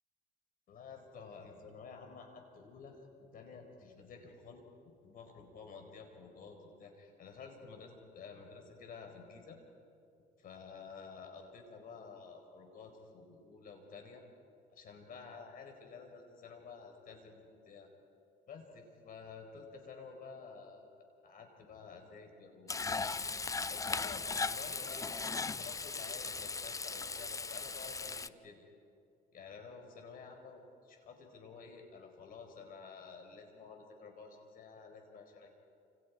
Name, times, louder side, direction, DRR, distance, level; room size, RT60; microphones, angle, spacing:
voice 1, 0.7-4.7 5.0-9.6 10.4-14.2 14.7-17.9 18.5-20.8 21.2-23.2 23.7-28.7 29.3-35.5, left 5 dB, 55° left, 4 dB, 4.8 m, -51 dB
Frying (food), 22.7-28.3, left 4 dB, 20° left, 0.6 m, -38 dB
29.5 x 27.5 x 4.9 m, 2.6 s
cardioid pair, 110°, 17 cm